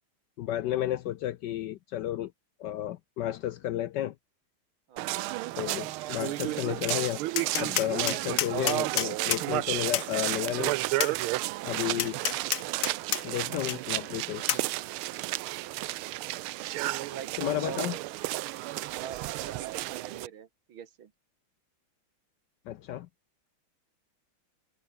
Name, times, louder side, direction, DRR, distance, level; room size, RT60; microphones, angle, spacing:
voice 1, 0.4-2.3 2.6-4.1 5.6-7.2 7.5-10.7 11.6-12.2 13.2-14.4 17.4-18.0 22.7-23.1, left 12 dB, 70° left, 1.1 m, -32 dB
voice 2, 4.9-5.4 17.0-17.8 18.9-21.1, right 8 dB, 70° right, 2.3 m, -44 dB
sound 1, 5.0-20.3, right 17 dB, 90° right, 1.5 m, -32 dB
Tap, 6.9-7.0 7.4-9.4 9.9-10.1 11.0-11.1 12.0-13.2 13.7-13.8 14.5-14.6, left 10 dB, 55° left, 1.0 m, -29 dB
omnidirectional pair, 2.3 m